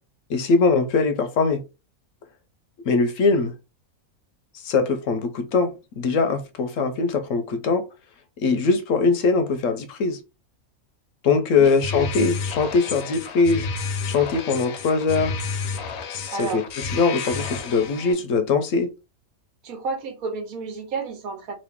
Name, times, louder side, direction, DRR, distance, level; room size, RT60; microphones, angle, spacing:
voice 1, 0.3-1.6 2.8-3.5 4.6-7.8 8.4-10.2 11.2-13.7 14.0-15.4 16.1-16.6 16.9-18.9, left 4 dB, 70° left, 0.9 m, -21 dB
sound 1, 11.6-18.1, left 5 dB, 85° left, 1.1 m, -31 dB
voice 2, 16.3-16.6 17.4-17.5 19.6-21.5, right 4 dB, 75° right, 1.3 m, -31 dB
3.0 x 2.5 x 3.5 m
omnidirectional pair, 1.5 m